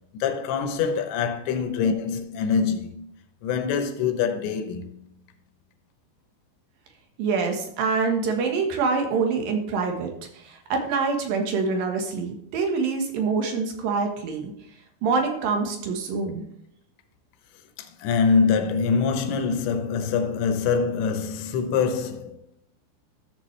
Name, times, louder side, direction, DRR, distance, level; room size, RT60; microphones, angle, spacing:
voice 1, 0.1-3.1 3.4-4.9 17.8-22.4, left 5 dB, 80° left, 3.2 m, -24 dB
voice 2, 7.2-14.5 15.0-16.4, right 4 dB, 65° right, 2.7 m, -25 dB
14.0 x 7.4 x 3.2 m
omnidirectional pair, 5.2 m